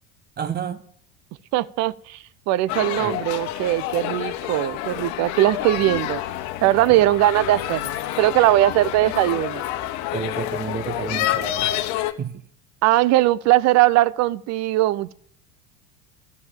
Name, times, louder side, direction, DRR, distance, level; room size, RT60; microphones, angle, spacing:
voice 1, 0.4-0.9 3.0-3.2 6.9-7.0 10.1-11.9 12.2-12.4, right 6 dB, 30° right, 1.3 m, -30 dB
voice 2, 1.5-2.2 2.5-6.2 6.6-7.9 8.2-9.6 12.8-15.1, right 16 dB, 55° right, 0.7 m, -20 dB
sound 1, 2.7-12.1, left 13 dB, 60° left, 1.2 m, -28 dB
13.0 x 7.2 x 7.3 m
supercardioid pair, 95°, 32 cm